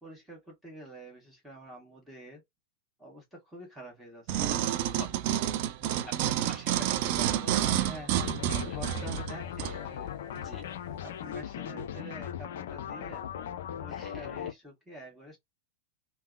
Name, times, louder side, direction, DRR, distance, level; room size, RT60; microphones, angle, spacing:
voice 1, 0.0-2.4 3.0-4.8 5.8-6.3 7.5-10.1 11.0-13.3 13.8-15.4, equal, 5° right, 1.3 m, -47 dB
sound 1, 4.3-9.8 10.3-10.4, right 11 dB, 45° right, 0.4 m, -29 dB
voice 2, 6.0-8.0 10.3-10.7 13.9-14.5, left 1 dB, 20° left, 1.2 m, -47 dB
sound 2, 8.2-14.5, left 9 dB, 55° left, 0.3 m, -38 dB
3.5 x 2.0 x 2.4 m
figure-of-eight pair, 90°, 0 cm